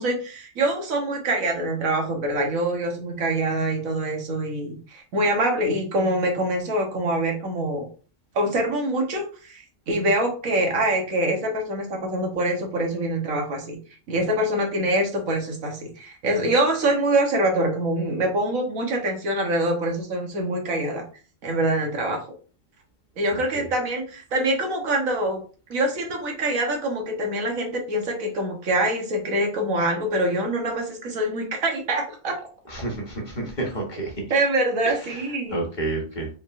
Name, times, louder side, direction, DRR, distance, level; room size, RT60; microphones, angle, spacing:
voice 1, 0.0-7.9 8.3-13.8 14.1-21.0 21.4-22.3 23.2-25.4 25.7-32.3 34.3-35.6, right 1 dB, 85° right, 2 dB, 1.5 m, -25 dB
voice 2, 32.7-34.1 34.8-34.9 35.5-36.3, right 2 dB, 40° left, 0 dB, 1.2 m, -29 dB
5.0 x 3.3 x 2.5 m, 0.38 s
omnidirectional pair, 1.4 m